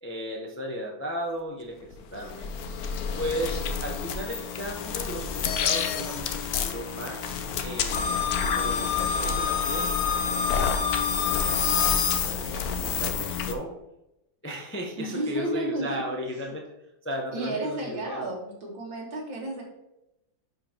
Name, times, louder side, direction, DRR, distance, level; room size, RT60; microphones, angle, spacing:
voice 1, 0.0-2.5 3.2-7.4 7.6-8.1 8.4-9.9 10.4-12.5 12.7-13.7 14.4-16.6 17.0-18.4, equal, 15° left, 0 dB, 0.5 m, -35 dB
sound 1, 1.9-13.5, left 6 dB, 65° left, 1.0 m, -28 dB
voice 2, 15.0-16.0 17.3-19.6, right 1 dB, 80° right, -2 dB, 2.7 m, -32 dB
10.5 x 4.9 x 3.0 m, 0.87 s
omnidirectional pair, 2.1 m